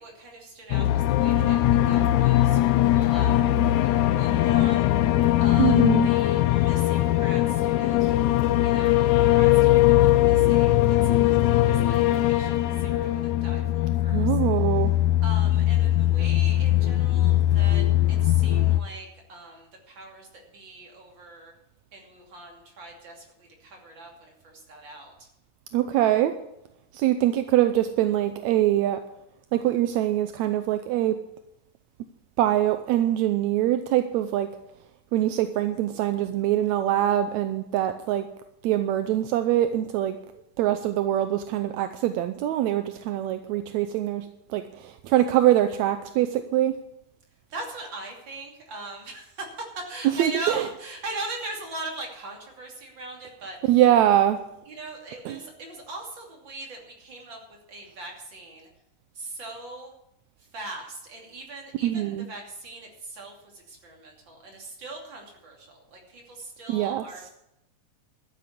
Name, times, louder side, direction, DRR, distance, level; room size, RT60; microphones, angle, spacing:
voice 1, 0.0-8.1 8.6-14.3 15.2-21.5 21.9-25.3 47.5-53.7 54.7-57.4 57.7-58.7 59.1-59.9 60.4-67.3, right 2 dB, 35° right, 1 dB, 3.2 m, -41 dB
sound 1, 0.7-18.8, left 14 dB, 75° left, 1.9 m, -21 dB
voice 2, 5.6-6.1 14.1-14.9 25.7-26.3 26.9-29.0 29.5-31.2 32.4-34.5 35.1-38.3 38.6-40.2 40.6-46.8 50.1-50.7 53.6-54.4 55.3-55.4 61.8-62.3 66.7-67.3, right 12 dB, 75° right, 9 dB, 1.7 m, -23 dB
13.0 x 8.2 x 8.4 m, 0.84 s
omnidirectional pair, 3.8 m